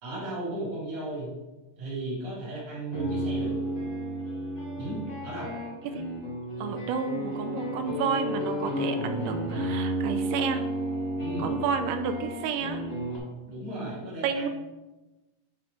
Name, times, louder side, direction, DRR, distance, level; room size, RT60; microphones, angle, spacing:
voice 1, 0.0-1.3 1.8-3.6 4.8-5.5 11.2-11.5 13.5-14.5, right 2 dB, 60° right, -8 dB, 4.2 m, -35 dB
sound 1, 2.7-13.2, right 1 dB, 25° left, 1.0 m, -32 dB
voice 2, 6.6-10.6 11.4-12.8 14.2-14.5, right 6 dB, 80° right, 7 dB, 2.1 m, -30 dB
9.1 x 3.1 x 5.2 m, 1.1 s
omnidirectional pair, 4.0 m